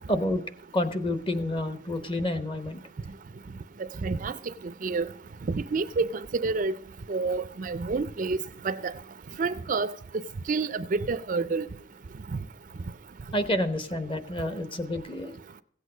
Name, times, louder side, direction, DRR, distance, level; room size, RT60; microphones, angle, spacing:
voice 1, 0.1-0.4 0.7-2.8 13.3-15.4, left 1 dB, 25° left, 1.0 m, -29 dB
voice 2, 4.0-4.3 4.8-5.1 5.5-6.7 7.1-8.4 8.6-8.9 9.4-9.9 10.5-11.7 12.3-12.4, right 4 dB, 40° right, 0.4 m, -28 dB
16.0 x 8.4 x 5.0 m
head